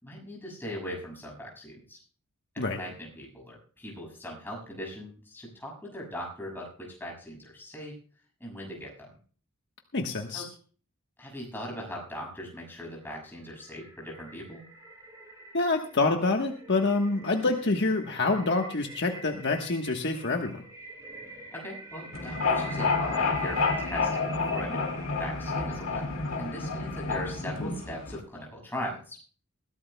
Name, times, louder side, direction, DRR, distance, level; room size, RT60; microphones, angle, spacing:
voice 1, 0.0-2.0 2.5-8.0 8.4-9.1 10.3-10.4 11.2-14.6 21.5-24.9 25.2-26.1 26.4-29.2, equal, 10° left, -1 dB, 6.7 m, -40 dB
voice 2, 9.9-10.5 15.5-20.6, left 3 dB, 55° left, 3 dB, 1.3 m, -27 dB
sound 1, 12.9-26.3, right 2 dB, 15° right, 5.3 m, -45 dB
sound 2, 22.1-28.2, left 4 dB, 70° left, 2.3 m, -29 dB
21.5 x 16.0 x 2.3 m, 0.41 s
head